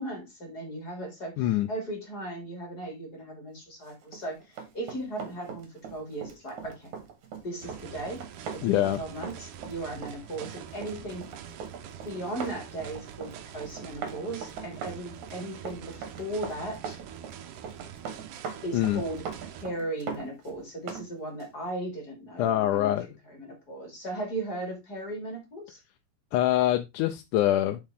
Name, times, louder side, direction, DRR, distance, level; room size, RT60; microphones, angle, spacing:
voice 1, 0.0-6.9 7.4-8.3 8.5-11.2 12.0-17.0 18.6-22.9 23.3-25.8, right 1 dB, 30° left, 3.1 m, -37 dB
voice 2, 1.4-1.7 8.6-9.0 18.7-19.0 22.4-23.1 26.3-27.8, left 13 dB, 85° left, 2.1 m, -24 dB
Run, 4.0-21.1 21.4-21.6, right 6 dB, 70° right, 3.0 m, -40 dB
sound 1, 7.6-19.7, right 9 dB, 85° right, 2.5 m, -45 dB
7.4 x 5.9 x 3.6 m
omnidirectional pair, 3.5 m